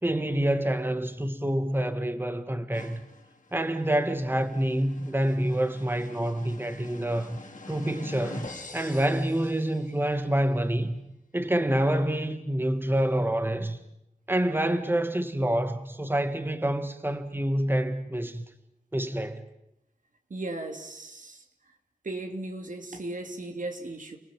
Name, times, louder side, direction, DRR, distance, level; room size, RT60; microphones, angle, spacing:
voice 1, 0.0-3.0 3.5-7.4 7.7-11.0 11.3-13.8 14.3-18.4 18.9-19.4, right 1 dB, 15° right, 1.8 m, -27 dB
sound 1, 2.7-10.3, left 3 dB, 70° left, 4.1 m, -46 dB
voice 2, 20.3-21.4 22.0-24.2, right 2 dB, 75° right, 3.0 m, -36 dB
30.0 x 19.5 x 9.0 m
wide cardioid pair, 60°, 14 cm